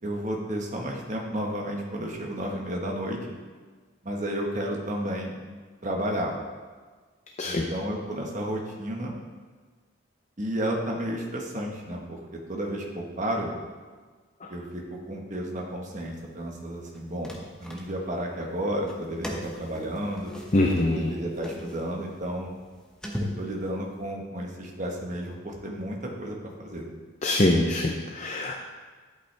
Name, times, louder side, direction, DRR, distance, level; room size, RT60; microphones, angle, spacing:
voice 1, 0.0-3.4 4.0-5.3 5.8-6.3 7.4-9.1 10.4-13.5 14.5-17.3 17.6-20.3 20.9-22.5 23.2-26.9, right 1 dB, 35° right, 0 dB, 1.3 m, -32 dB
voice 2, 7.4-7.7 14.4-14.5 20.5-21.1 27.2-28.6, left 1 dB, 35° left, 1 dB, 0.6 m, -24 dB
sound 1, 16.9-18.3 18.8-24.1, left 1 dB, 5° left, 0.9 m, -39 dB
11.5 x 8.4 x 3.4 m, 1.4 s
head